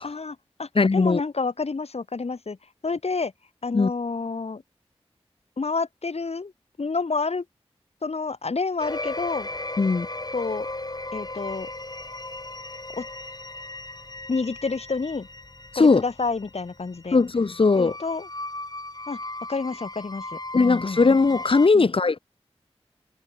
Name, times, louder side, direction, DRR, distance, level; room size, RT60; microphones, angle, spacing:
voice 1, 0.0-2.6 2.8-3.3 3.6-4.6 5.6-6.5 6.8-7.5 8.0-9.5 10.3-10.7 11.1-11.7 13.0-13.1 14.3-15.3 15.8-17.2 17.8-18.3 19.1-19.2 19.5-21.0 21.7-21.9, left 4 dB, 70° left, 1.7 m, -29 dB
voice 2, 0.8-1.2 3.7-3.9 9.8-10.1 15.7-16.0 17.1-17.9 20.5-22.2, left 4 dB, 55° left, 0.8 m, -19 dB
sound 1, 8.8-21.7, left 2 dB, 35° left, 6.0 m, -37 dB
wide cardioid pair, 50°, 11 cm